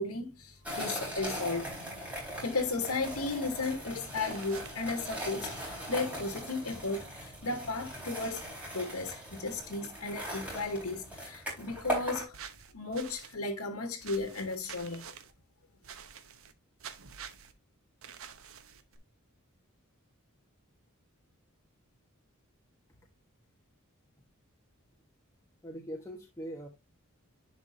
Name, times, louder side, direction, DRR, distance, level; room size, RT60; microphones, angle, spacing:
voice 1, 0.0-1.8 2.4-12.4 12.7-15.1, left 3 dB, 80° left, 1.2 m, -35 dB
sound 1, 0.6-12.2, equal, 5° right, 3.8 m, -40 dB
sound 2, 4.2-4.8 12.3-13.3 14.0-15.3 15.8-16.5 16.8-17.5 18.0-19.0, right 7 dB, 65° right, 0.9 m, -48 dB
voice 2, 25.6-26.7, equal, 15° left, 1.1 m, -41 dB
10.5 x 4.6 x 2.6 m
head